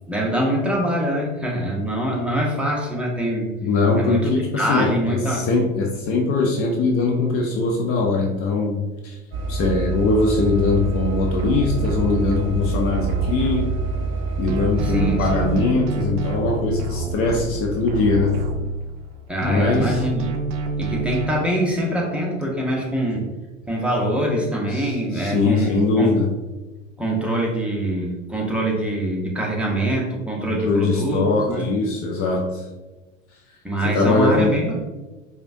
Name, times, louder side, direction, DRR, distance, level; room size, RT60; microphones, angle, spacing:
voice 1, 0.1-3.5 3.9-5.5 14.8-15.3 19.3-20.3 20.8-23.3 23.7-26.2 27.0-31.6 33.6-34.8, right 1 dB, 5° right, -3 dB, 0.8 m, -24 dB
voice 2, 3.6-9.2 9.5-13.7 14.4-18.4 19.4-20.0 24.7-26.3 30.5-32.7 33.8-34.5, left 3 dB, 35° left, 1 dB, 0.5 m, -21 dB
sound 1, 9.3-15.6, right 3 dB, 30° right, 1.1 m, -26 dB
sound 2, 11.4-14.2 14.5-19.1 19.4-21.3, right 4 dB, 55° right, 0.5 m, -28 dB
4.9 x 2.3 x 2.6 m, 1.1 s
figure-of-eight pair, 80°, 38 cm